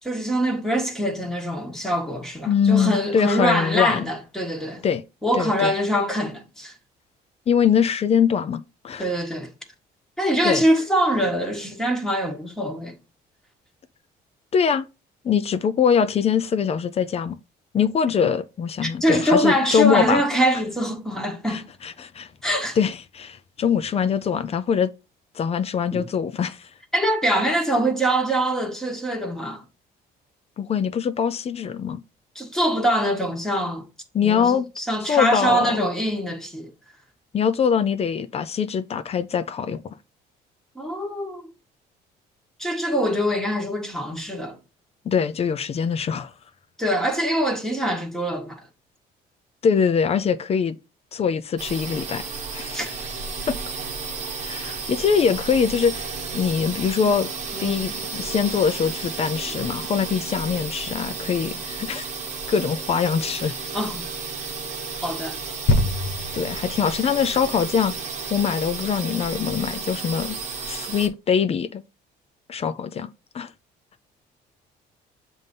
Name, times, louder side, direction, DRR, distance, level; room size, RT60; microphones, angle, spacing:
voice 1, 0.0-4.8 5.2-6.7 9.0-9.5 10.2-13.0 18.8-21.7 22.4-22.8 25.9-26.1 26.9-29.6 32.3-33.9 34.2-36.7 40.7-41.4 42.6-44.6 46.8-48.6 52.7-52.9 54.6-54.7 57.0-57.1 57.5-57.9 63.7-64.1 65.0-65.4, equal, 5° left, 1.5 m, -24 dB
voice 2, 2.5-4.1 4.8-5.0 5.3-5.7 7.5-9.1 10.4-10.6 14.5-14.9 15.2-17.4 17.7-20.2 21.5-22.3 22.8-24.9 25.3-26.7 30.6-32.0 34.1-34.7 35.0-35.8 37.3-39.9 45.1-46.3 49.6-50.8 51.1-52.2 52.5-52.8 53.5-53.6 54.4-57.3 57.6-62.1 62.5-63.5 66.3-67.9 68.3-70.4 70.7-71.8 72.5-73.1 73.3-73.5, left 7 dB, 35° left, 0.5 m, -23 dB
sound 1, 51.6-71.1, right 4 dB, 45° right, 1.0 m, -33 dB
sound 2, 65.7-69.3 69.9-70.0, left 2 dB, 85° left, 1.1 m, -27 dB
7.3 x 2.7 x 5.3 m
cardioid pair, 110°, 17 cm